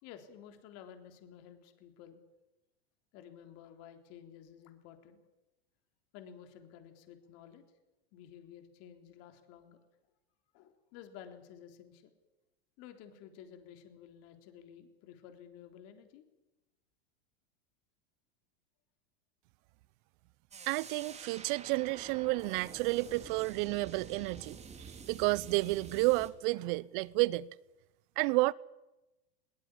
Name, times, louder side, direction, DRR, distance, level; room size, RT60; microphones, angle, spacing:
voice 1, 0.0-2.2 3.1-5.2 6.1-7.6 8.1-9.8 10.5-12.1 12.8-16.2, left 9 dB, 50° left, 3.6 m, -53 dB
sound 1, 20.5-26.3, right 5 dB, 20° right, 2.9 m, -49 dB
voice 2, 20.7-24.6 25.1-27.5 28.2-28.5, right 22 dB, 50° right, 0.9 m, -31 dB
21.0 x 19.5 x 9.9 m
hypercardioid pair, 110°, 31 cm